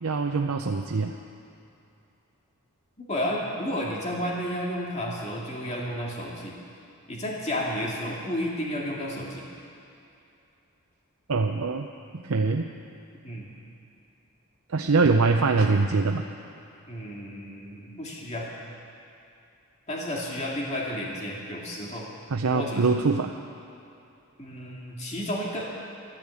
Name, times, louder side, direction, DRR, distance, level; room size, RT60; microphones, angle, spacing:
voice 1, 0.0-1.2 11.3-11.9 12.1-12.7 14.7-16.3 22.3-23.3, right 4 dB, 75° right, 3 dB, 0.7 m, -23 dB
voice 2, 3.0-6.6 7.1-9.5 13.2-13.5 16.9-18.5 19.9-22.1 22.5-23.0 24.4-25.7, equal, 30° left, -3 dB, 2.1 m, -32 dB
13.0 x 12.0 x 8.4 m, 2.7 s
head